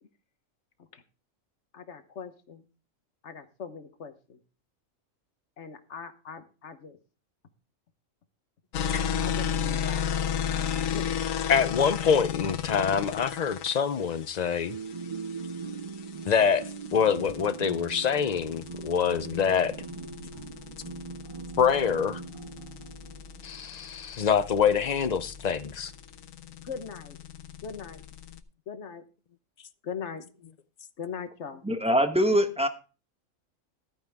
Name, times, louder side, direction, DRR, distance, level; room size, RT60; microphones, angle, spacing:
voice 1, 1.7-2.6 3.2-4.4 5.6-7.0 9.2-10.7 10.9-11.1 12.5-12.6 26.6-27.2 27.6-28.0 28.7-29.0 29.8-30.2 31.0-31.6, left 6 dB, 60° left, 1.4 m, -40 dB
sound 1, 8.7-28.4, left 8 dB, 80° left, 1.2 m, -34 dB
voice 2, 8.9-9.2 11.5-14.8 16.3-19.7 21.6-22.2 23.4-25.9, left 7 dB, 45° left, 0.5 m, -25 dB
sound 2, 14.7-23.5, right 5 dB, 55° right, 0.3 m, -40 dB
voice 3, 31.6-32.7, equal, 5° right, 0.9 m, -23 dB
13.5 x 9.1 x 3.5 m
omnidirectional pair, 1.4 m